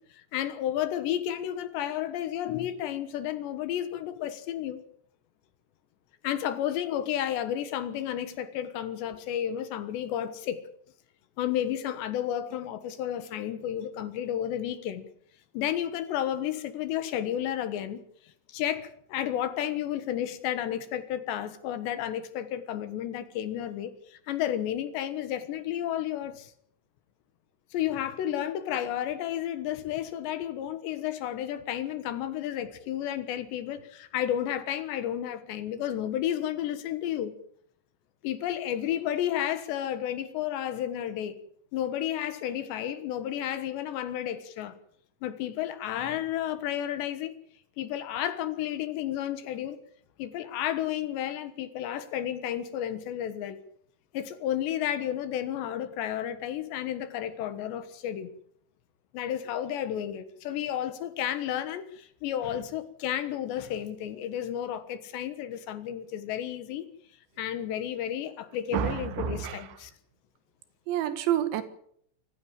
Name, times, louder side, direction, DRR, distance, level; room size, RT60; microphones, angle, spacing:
voice 1, 0.3-4.8 6.2-10.6 11.4-15.1 15.5-18.0 18.5-26.5 27.7-37.3 38.2-41.4 41.7-44.8 45.2-47.3 47.8-49.8 50.2-53.6 54.1-58.3 59.1-66.9 67.4-69.9, left 11 dB, 70° left, 3.3 m, -32 dB
voice 2, 68.7-69.6 70.9-71.6, right 10 dB, 70° right, 3.8 m, -28 dB
26.0 x 15.0 x 7.4 m
omnidirectional pair, 5.6 m